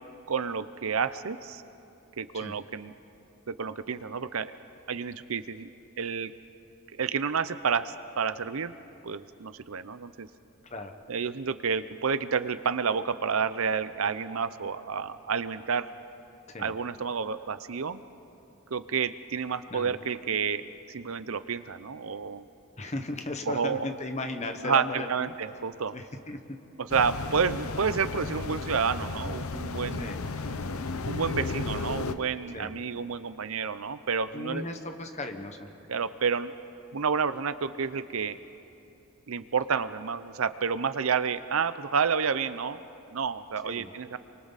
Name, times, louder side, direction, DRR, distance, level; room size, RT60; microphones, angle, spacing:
voice 1, 0.3-1.6 2.2-2.9 3.5-4.5 4.9-5.7 6.0-6.3 6.9-8.7 9.0-10.3 11.1-15.9 16.6-18.0 18.7-22.4 23.5-23.9 24.6-25.9 26.9-30.1 31.1-34.6 35.9-36.5 36.9-38.4 39.3-42.8 43.1-44.2, right 6 dB, 75° right, 13 dB, 0.7 m, -30 dB
voice 2, 22.8-25.3 25.9-26.6 30.0-30.3 32.5-32.8 34.3-35.7 43.6-43.9, left 2 dB, 30° left, 6 dB, 1.3 m, -36 dB
sound 1, 26.9-32.1, left 3 dB, 85° left, 0.8 m, -34 dB
28.5 x 24.0 x 4.1 m, 2.8 s
head